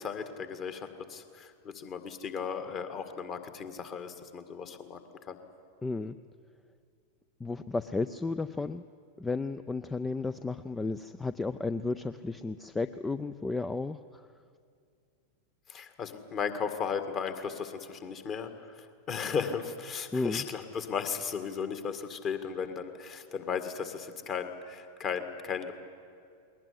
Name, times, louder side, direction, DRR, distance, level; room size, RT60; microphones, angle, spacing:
voice 1, 0.0-5.0 5.3-5.4 15.7-25.7, left 6 dB, 30° left, 9 dB, 1.9 m, -36 dB
voice 2, 5.8-6.2 7.4-8.8 9.2-14.3 20.1-20.4, left 3 dB, 10° left, 13 dB, 0.5 m, -33 dB
20.5 x 19.5 x 9.9 m, 2.4 s
figure-of-eight pair, 90°, 0 cm